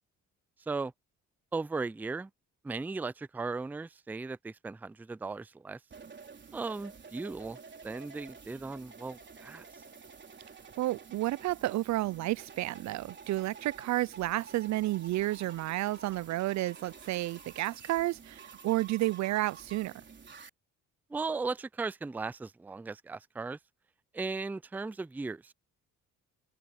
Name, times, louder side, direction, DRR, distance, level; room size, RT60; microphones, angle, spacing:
voice 1, 1.5-2.3 2.6-5.8 6.5-7.6 7.8-9.7 21.1-23.6 24.1-25.5, right 3 dB, 5° right, 0.4 m, -37 dB
sound 1, 5.9-20.5, right 5 dB, 40° right, 4.1 m, -50 dB
voice 2, 10.8-19.9, right 16 dB, 65° right, 0.4 m, -31 dB
open air
cardioid pair, 90°, 30 cm